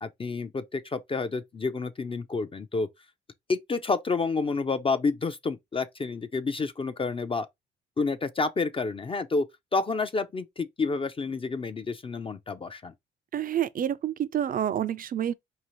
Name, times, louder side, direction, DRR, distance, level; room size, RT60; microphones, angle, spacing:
voice 1, 0.0-2.9 3.5-7.5 8.0-12.9, left 4 dB, 25° left, 0.5 m, -29 dB
voice 2, 13.3-15.3, right 10 dB, 45° right, 0.5 m, -28 dB
4.7 x 2.8 x 3.0 m
cardioid pair, 90°, 20 cm